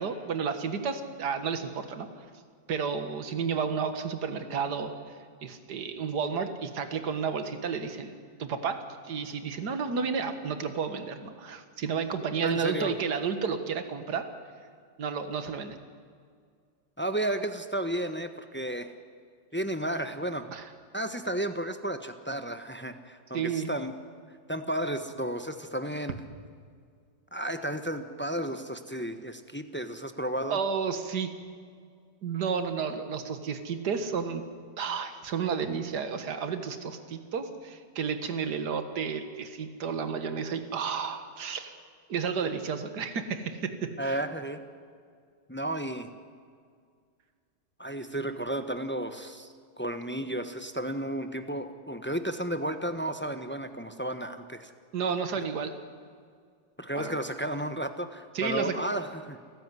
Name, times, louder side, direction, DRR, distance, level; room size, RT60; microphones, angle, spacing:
voice 1, 0.0-2.3 2.7-4.9 5.4-8.1 8.4-8.8 9.0-14.3 15.0-15.8 20.5-20.7 23.3-23.7 30.5-31.3 32.2-34.4 34.8-41.7 42.1-44.2 54.9-55.7 56.9-57.2 58.3-58.8, right 6 dB, 65° right, 8 dB, 2.1 m, -31 dB
voice 2, 12.4-12.9 17.0-18.9 19.5-20.5 20.9-23.9 24.5-26.2 27.3-30.6 44.0-44.6 45.5-46.1 47.8-49.5 49.8-54.7 56.8-59.4, right 1 dB, 10° left, 8 dB, 0.9 m, -33 dB
29.5 x 14.5 x 9.7 m, 2.1 s
omnidirectional pair, 1.9 m